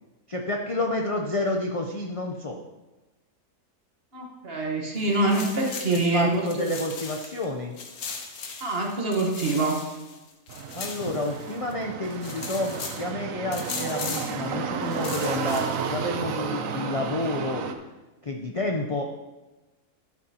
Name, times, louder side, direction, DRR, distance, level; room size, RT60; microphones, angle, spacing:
voice 1, 0.3-2.6 5.9-7.7 10.7-17.7 18.2-19.0, left 2 dB, 50° left, 1 dB, 0.3 m, -29 dB
voice 2, 4.1-6.7 8.6-9.8, right 2 dB, 40° right, -1 dB, 1.5 m, -25 dB
sound 1, 5.0-7.5 7.8-11.7 12.0-13.1 13.5-14.4 14.8-16.0, left 5 dB, 70° left, 1.4 m, -38 dB
sound 2, 10.5-17.7, right 6 dB, 65° right, 1.0 m, -32 dB
12.0 x 8.2 x 2.9 m, 1.1 s
omnidirectional pair, 1.7 m